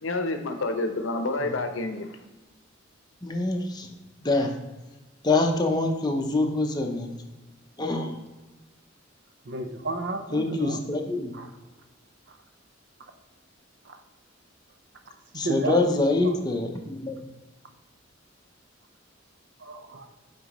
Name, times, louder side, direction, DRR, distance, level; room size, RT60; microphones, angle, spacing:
voice 1, 0.0-2.2, left 2 dB, 85° left, 7 dB, 0.7 m, -29 dB
voice 2, 3.2-3.9 4.2-4.5 5.2-7.1 7.8-8.1 10.3-11.3 15.3-17.2, left 2 dB, 20° left, 3 dB, 0.7 m, -25 dB
voice 3, 9.4-11.0 11.3-11.5 12.3-12.4 13.8-14.0 15.3-16.4 19.6-20.1, right 2 dB, 60° right, 6 dB, 0.6 m, -33 dB
8.8 x 3.8 x 3.0 m, 1.1 s
head